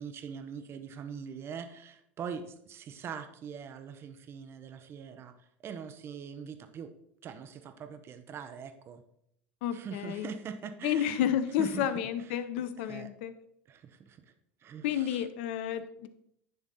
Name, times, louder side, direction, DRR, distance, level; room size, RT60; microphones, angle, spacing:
voice 1, 0.0-6.9 7.2-9.0 9.7-11.3 11.6-11.9 12.9-13.1 13.7-14.3 14.6-15.2, right 6 dB, 40° right, 9 dB, 0.8 m, -42 dB
voice 2, 9.6-10.3 10.8-13.3 14.8-16.1, left 10 dB, 75° left, 12 dB, 0.6 m, -31 dB
10.0 x 3.5 x 4.2 m, 0.73 s
hypercardioid pair, 90°, 6 cm